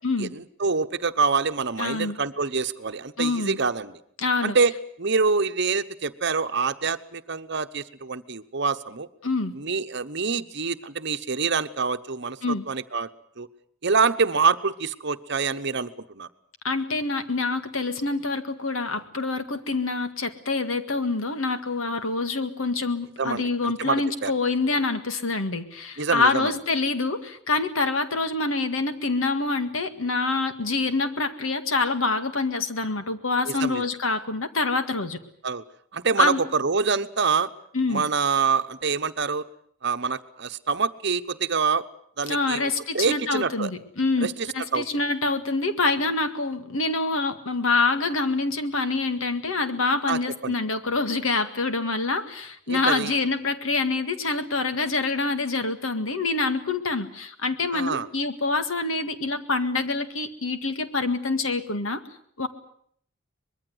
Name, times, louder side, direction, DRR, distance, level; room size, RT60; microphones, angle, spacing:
voice 1, 0.2-4.0 4.4-4.7 5.0-9.1 9.5-13.1 13.4-13.5 13.8-16.3 23.2-24.3 26.0-26.5 33.5-33.9 35.4-35.6 35.9-37.5 37.9-39.4 39.8-41.9 42.2-43.7 44.2-44.5 44.7-44.9 50.1-50.5 52.7-53.1 57.7-58.1, right 5 dB, 55° right, 10 dB, 1.0 m, -26 dB
voice 2, 1.8-2.2 3.2-3.6 4.2-4.6 9.2-9.5 12.4-12.6 16.6-35.2 36.2-36.4 37.7-38.0 42.3-44.3 44.5-62.0 62.4-62.5, left 3 dB, 75° left, 9 dB, 1.9 m, -26 dB
24.5 x 21.5 x 7.9 m, 0.63 s
head